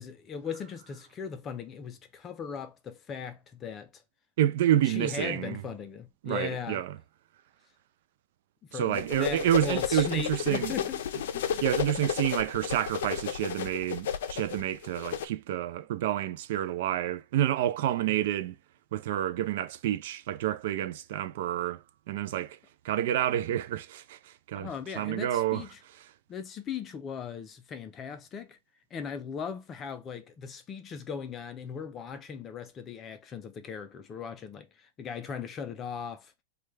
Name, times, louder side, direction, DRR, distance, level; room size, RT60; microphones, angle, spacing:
voice 1, 0.0-3.9 4.8-6.8 8.6-11.0 11.3-11.6 12.0-12.1 18.1-18.2 24.5-25.8 26.3-28.6 28.9-36.3, left 6 dB, 20° left, 0.4 m, -38 dB
voice 2, 4.4-5.6 6.2-7.0 8.7-10.7 11.6-18.6 18.9-21.8 22.1-22.6 22.8-24.7 25.0-25.6, right 12 dB, 55° right, 0.3 m, -29 dB
sound 1, 9.0-15.3, left 9 dB, 75° left, 0.5 m, -32 dB
3.2 x 2.3 x 3.2 m
supercardioid pair, 170°, 0 cm